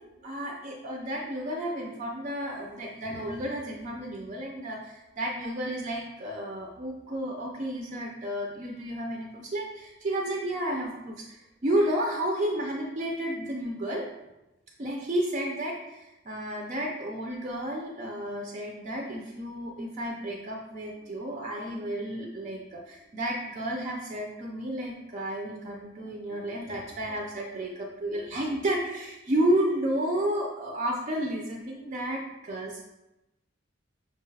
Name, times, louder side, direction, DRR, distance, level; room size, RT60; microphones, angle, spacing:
voice 1, 0.2-14.1 14.8-32.8, right 1 dB, 35° right, -1 dB, 0.4 m, -32 dB
5.8 x 2.3 x 3.2 m, 0.96 s
head